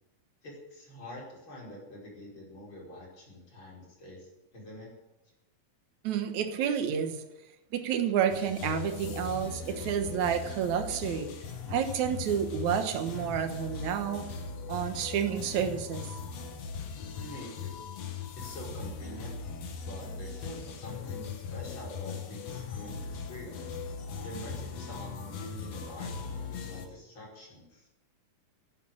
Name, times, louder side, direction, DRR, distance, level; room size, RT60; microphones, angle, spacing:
voice 1, 0.4-4.9 17.2-17.8 18.3-19.4 19.8-27.9, equal, 40° left, -3 dB, 5.7 m, -46 dB
voice 2, 6.0-7.2 7.7-11.3 11.7-14.2 14.7-16.1, right 8 dB, 70° right, 7 dB, 2.6 m, -30 dB
sound 1, 8.3-26.9, left 5 dB, 60° left, 2.4 m, -39 dB
11.5 x 10.5 x 8.9 m, 0.96 s
omnidirectional pair, 3.6 m